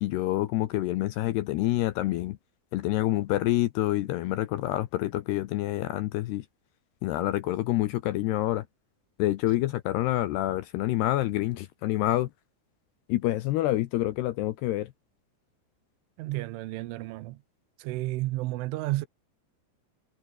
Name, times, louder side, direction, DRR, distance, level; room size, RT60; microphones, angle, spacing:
voice 1, 0.0-2.4 2.7-6.5 7.0-8.7 9.2-12.3 13.1-14.9, left 15 dB, 75° left, 2.5 m, -27 dB
voice 2, 16.2-17.4 17.8-19.1, right 18 dB, 80° right, 3.4 m, -32 dB
omnidirectional pair, 5.6 m